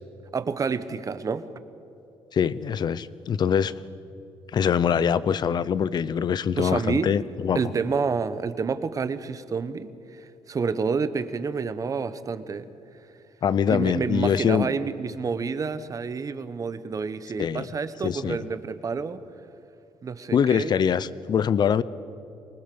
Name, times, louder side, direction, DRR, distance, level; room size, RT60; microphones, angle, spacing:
voice 1, 0.3-1.5 6.6-7.1 7.5-12.6 13.7-19.2 20.0-20.8, right 5 dB, 35° right, 12 dB, 1.2 m, -29 dB
voice 2, 2.3-3.7 4.5-7.6 13.4-14.7 17.4-17.7 18.0-18.4 20.3-21.8, left 7 dB, 50° left, 18 dB, 0.8 m, -23 dB
25.5 x 19.5 x 7.0 m, 2.8 s
cardioid pair, 105°, 10 cm